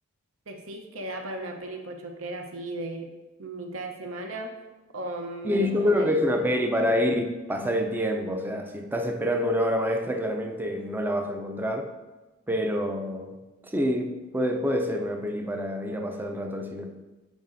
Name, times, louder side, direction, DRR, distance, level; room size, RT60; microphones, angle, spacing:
voice 1, 0.5-3.1 3.4-4.5 4.9-6.1 6.4-6.8, right 1 dB, 70° right, 0.8 m, -36 dB
voice 2, 5.4-7.2 7.5-11.9 12.5-17.0, equal, 10° right, 0.4 m, -27 dB
9.4 x 5.0 x 2.6 m
head